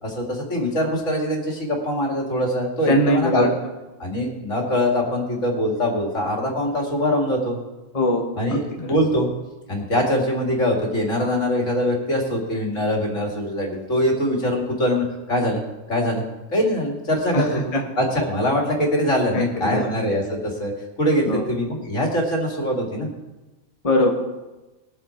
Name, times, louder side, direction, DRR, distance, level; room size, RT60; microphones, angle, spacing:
voice 1, 0.0-3.6 4.0-7.6 8.4-9.3 9.7-15.6 15.9-16.2 16.5-20.7 21.0-23.1, equal, 60° left, 0 dB, 2.8 m, -23 dB
voice 2, 2.9-3.5 7.9-8.2 8.5-8.6 17.3-17.4 17.7-17.8 19.3-19.8 21.3-21.4 23.8-24.1, left 1 dB, 25° left, 0 dB, 1.3 m, -20 dB
21.0 x 8.0 x 4.4 m, 1.1 s
omnidirectional pair, 1.4 m